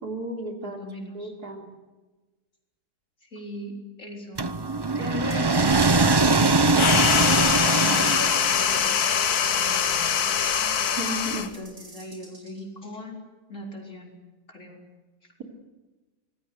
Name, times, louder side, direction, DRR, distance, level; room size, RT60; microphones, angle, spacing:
voice 1, 0.0-0.8 1.1-1.7 10.6-10.7 11.0-11.5, right 1 dB, 70° right, 3 dB, 3.9 m, -33 dB
voice 2, 0.6-1.3 3.2-4.5 4.9-5.7 6.2-10.5 11.3-13.2 13.5-14.2 14.5-14.9 15.2-15.3, left 1 dB, 50° left, 1 dB, 4.7 m, -39 dB
sound 1, 4.4-8.8, right 3 dB, 30° right, 0.5 m, -22 dB
sound 2, 5.3-12.6, right 2 dB, 85° right, 6.2 m, -48 dB
sound 3, 6.7-11.5, left 8 dB, 70° left, 1.7 m, -23 dB
24.5 x 20.0 x 7.9 m, 1.2 s
omnidirectional pair, 1.7 m